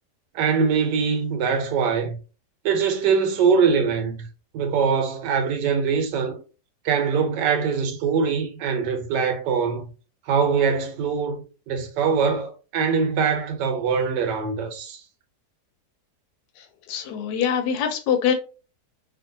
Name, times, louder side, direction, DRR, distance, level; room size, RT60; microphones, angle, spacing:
voice 1, 0.3-2.2 2.6-4.3 4.5-6.4 6.8-9.8 10.3-15.0, right 6 dB, 80° right, 1.3 m, -23 dB
voice 2, 16.9-18.3, left 8 dB, 85° left, 1.2 m, -23 dB
2.8 x 2.6 x 2.5 m
omnidirectional pair, 1.8 m